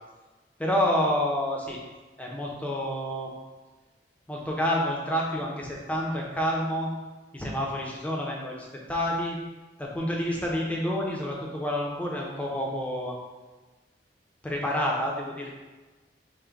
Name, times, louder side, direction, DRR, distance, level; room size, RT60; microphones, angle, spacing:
voice 1, 0.6-1.8 2.2-3.3 4.3-6.9 7.3-9.4 9.8-13.2 14.4-15.5, equal, 10° left, -2 dB, 0.6 m, -28 dB
3.7 x 2.1 x 4.4 m, 1.2 s
head